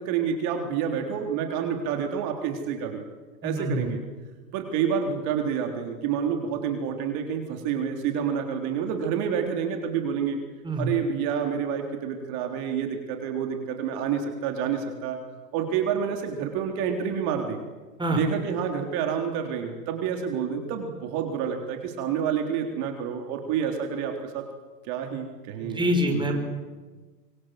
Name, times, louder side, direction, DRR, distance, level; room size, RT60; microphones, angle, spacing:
voice 1, 0.0-3.0 3.4-4.0 4.5-10.4 10.8-15.2 15.5-17.6 18.1-24.4 24.9-26.4, right 7 dB, 45° right, 4 dB, 3.9 m, -28 dB
voice 2, 3.4-3.9 10.6-10.9 18.0-18.2 25.6-26.4, equal, 10° right, 3 dB, 5.3 m, -25 dB
25.0 x 23.5 x 7.8 m, 1.3 s
hypercardioid pair, 115°, 50 cm